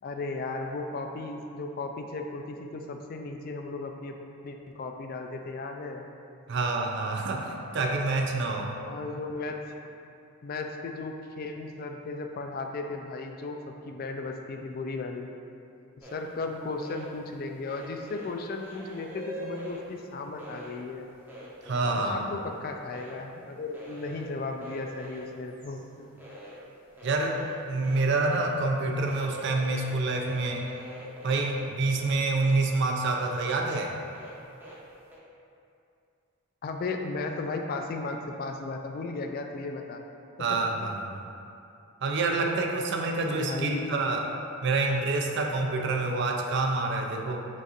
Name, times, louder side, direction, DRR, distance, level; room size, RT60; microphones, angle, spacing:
voice 1, 0.0-4.2 4.4-6.1 8.9-9.6 10.4-13.6 13.8-15.3 16.1-21.1 21.8-26.1 36.6-40.0 40.4-40.9 43.2-43.8, left 3 dB, 45° left, 3 dB, 0.3 m, -35 dB
voice 2, 6.5-8.7 21.6-22.2 27.0-27.4 27.7-30.7 31.2-33.9 40.4-41.2 42.0-44.2 44.6-47.5, right 3 dB, 55° right, 2 dB, 0.4 m, -27 dB
sound 1, 16.0-16.1 16.6-17.0 17.7-19.8 20.4-20.7 21.1-22.5 22.8-23.2 23.7-24.2 24.6-25.8 26.2-26.5 26.8-28.5 28.9-32.8 33.1-34.7 35.1-35.2, right 1 dB, 10° right, 0.6 m, -44 dB
6.1 x 2.5 x 2.8 m, 2.5 s
head